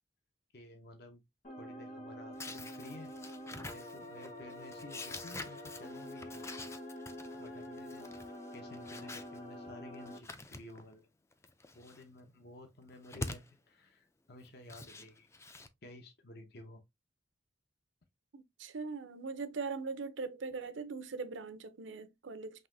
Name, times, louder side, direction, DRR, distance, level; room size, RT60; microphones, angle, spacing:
voice 1, 0.5-1.2 1.5-3.1 3.5-6.7 7.1-8.1 8.5-11.1 11.7-15.3 15.8-16.8, left 2 dB, 55° left, 0.8 m, -53 dB
sound 1, 1.4-10.2, left 1 dB, 40° left, 1.3 m, -46 dB
sound 2, 2.3-9.4 9.9-10.9 11.3-12.0 12.8-13.5 14.5-15.7, left 2 dB, 15° left, 0.4 m, -46 dB
voice 2, 18.3-22.7, right 4 dB, 80° right, 0.6 m, -41 dB
5.4 x 2.9 x 2.6 m
head